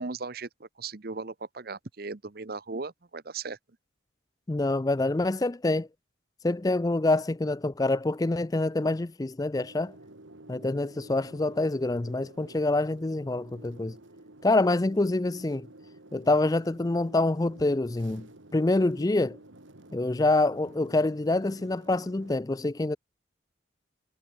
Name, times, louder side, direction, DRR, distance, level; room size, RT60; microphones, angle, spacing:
voice 1, 0.0-3.6, right 4 dB, 50° right, 0.9 m, -37 dB
voice 2, 4.5-5.9 6.4-9.9 10.5-14.0 14.4-15.7 16.1-19.4 19.9-23.0, left 2 dB, 20° left, 0.4 m, -26 dB
sound 1, 9.5-22.4, right 1 dB, 85° right, 2.8 m, -51 dB
head